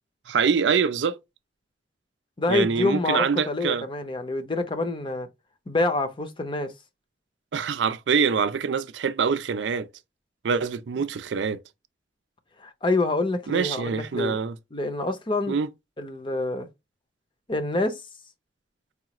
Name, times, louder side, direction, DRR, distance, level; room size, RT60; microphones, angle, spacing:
voice 1, 0.3-1.2 2.5-3.9 7.5-9.9 10.4-11.6 13.5-14.6 15.5-15.7, right 6 dB, 75° right, 0.4 m, -25 dB
voice 2, 2.4-5.3 5.7-6.7 12.6-14.4 14.7-15.6 16.0-16.7 17.5-18.0, left 2 dB, 30° left, 0.7 m, -26 dB
4.8 x 2.4 x 2.9 m
head